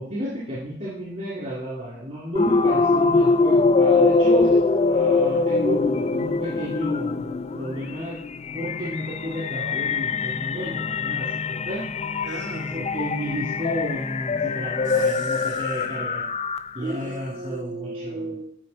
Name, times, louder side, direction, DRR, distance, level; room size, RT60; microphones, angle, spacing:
voice 1, 0.0-8.2 8.5-11.9 12.7-16.2 16.7-18.2, right 1 dB, 45° right, -8 dB, 3.1 m, -32 dB
sound 1, 2.3-16.9, left 3 dB, 35° left, 0.4 m, -23 dB
voice 2, 12.2-12.8 14.9-15.7 16.8-18.4, right 2 dB, 70° right, 4 dB, 1.4 m, -35 dB
12.5 x 4.8 x 4.3 m, 0.67 s
head